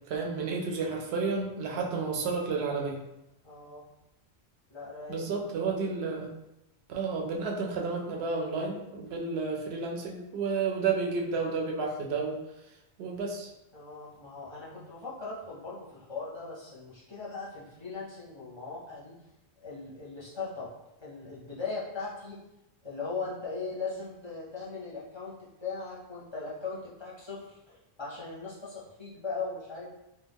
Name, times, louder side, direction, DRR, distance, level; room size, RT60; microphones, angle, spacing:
voice 1, 0.1-3.0 5.1-6.3 6.9-12.4 13.0-13.5, right 4 dB, 75° right, 0 dB, 0.8 m, -31 dB
voice 2, 3.4-3.9 4.7-5.7 13.7-19.2 19.6-20.7 21.0-22.4 22.8-29.9, left 4 dB, 30° left, -7 dB, 0.7 m, -39 dB
2.3 x 2.3 x 3.3 m, 0.89 s
omnidirectional pair, 1.1 m